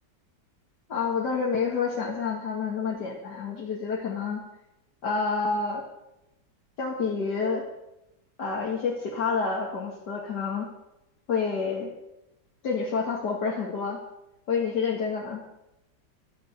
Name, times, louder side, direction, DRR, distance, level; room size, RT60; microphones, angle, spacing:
voice 1, 0.9-4.4 5.0-5.8 6.8-7.6 8.4-10.7 11.3-11.9 12.6-14.0 14.5-15.4, left 5 dB, 70° left, -3 dB, 2.5 m, -28 dB
16.0 x 12.5 x 6.6 m, 0.90 s
omnidirectional pair, 1.9 m